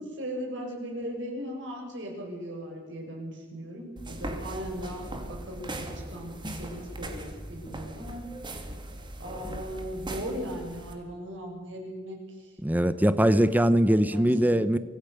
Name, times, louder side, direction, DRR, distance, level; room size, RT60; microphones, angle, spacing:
voice 1, 0.0-8.2 9.2-13.2 13.9-14.7, equal, 70° right, 1 dB, 6.6 m, -38 dB
sound 1, 4.0-10.9, right 1 dB, 25° right, 2.6 m, -39 dB
voice 2, 12.6-14.8, equal, 10° right, 13 dB, 0.7 m, -22 dB
24.5 x 17.0 x 6.7 m, 1.5 s
head